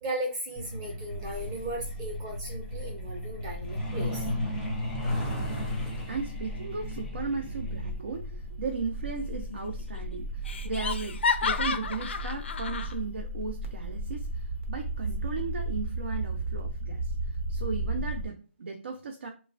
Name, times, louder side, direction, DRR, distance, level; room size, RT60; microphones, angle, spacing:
voice 1, 0.0-4.3, right 1 dB, 25° right, -1 dB, 0.8 m, -36 dB
Truck, 0.6-12.9 14.1-14.3 14.6-14.8 15.2-15.5 15.8-15.9 16.4-16.5, left 1 dB, 5° left, 0.6 m, -36 dB
sound 1, 1.1-18.3, right 1 dB, 90° right, 1.0 m, -36 dB
voice 2, 6.1-19.3, right 4 dB, 60° right, 3 dB, 0.6 m, -36 dB
Laughter, 9.1-9.7 10.0-10.1 10.5-12.9, left 5 dB, 60° left, 0.5 m, -31 dB
3.1 x 2.3 x 2.5 m, 0.35 s
hypercardioid pair, 160°, 7 cm